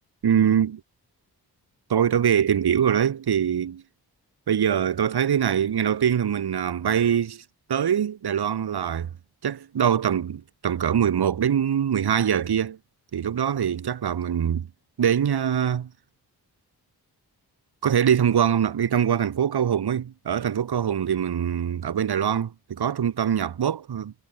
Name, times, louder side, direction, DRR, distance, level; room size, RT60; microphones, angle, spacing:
voice 1, 0.2-0.8 1.9-3.8 4.5-7.4 7.7-9.1 9.4-12.8 13.1-14.7 15.0-15.9 17.8-24.1, right 8 dB, 75° right, 1.7 m, -23 dB
wide cardioid pair, 115°, 39 cm